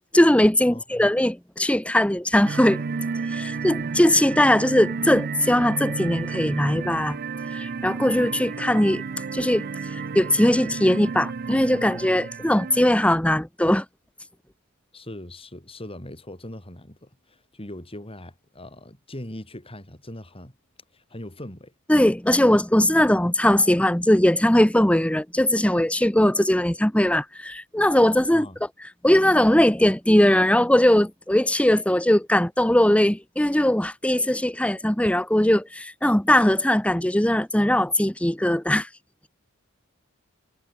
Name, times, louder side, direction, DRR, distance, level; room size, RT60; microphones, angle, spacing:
voice 1, 0.1-2.8 3.3-7.2 7.5-9.0 9.3-9.7 9.9-13.8 21.9-28.5 29.0-38.9, left 1 dB, 5° left, 1.0 m, -20 dB
voice 2, 0.7-1.1 14.9-20.5 20.9-21.7 28.3-28.6, left 1 dB, 25° left, 5.5 m, -40 dB
sound 1, 2.4-12.9, right 5 dB, 45° right, 0.5 m, -32 dB
head